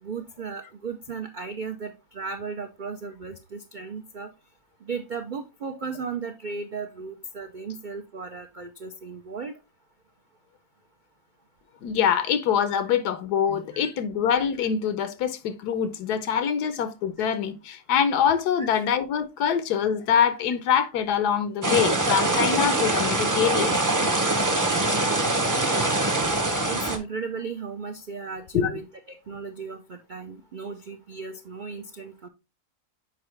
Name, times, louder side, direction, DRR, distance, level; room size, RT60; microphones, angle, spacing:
voice 1, 0.0-4.3 4.8-9.5 13.7-13.9 18.6-18.7 26.7-32.3, right 5 dB, 75° right, 0.4 m, -36 dB
voice 2, 11.8-23.8 28.5-28.7, left 8 dB, 85° left, 1.3 m, -24 dB
sound 1, 21.6-27.0, right 2 dB, 20° right, 0.5 m, -23 dB
6.7 x 4.8 x 3.2 m
omnidirectional pair, 1.7 m